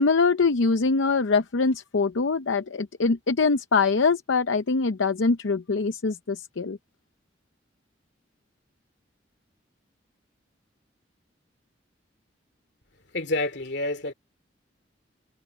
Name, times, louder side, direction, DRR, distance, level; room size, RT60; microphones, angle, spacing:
voice 1, 0.0-6.8, left 4 dB, 85° left, 0.7 m, -23 dB
voice 2, 13.1-14.1, left 2 dB, 65° left, 2.6 m, -28 dB
head